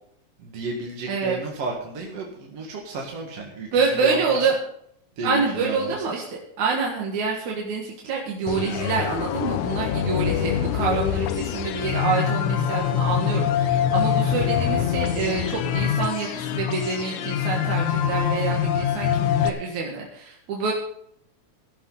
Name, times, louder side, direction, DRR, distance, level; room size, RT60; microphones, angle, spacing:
voice 1, 0.4-4.5 5.2-6.0, right 3 dB, 55° right, -1 dB, 2.8 m, -33 dB
voice 2, 1.1-1.4 3.7-4.5 5.2-20.7, right 4 dB, 80° right, -1 dB, 3.1 m, -26 dB
sound 1, 8.5-19.5, left 9 dB, 90° left, 2.3 m, -24 dB
15.0 x 12.0 x 4.0 m, 0.68 s
omnidirectional pair, 3.3 m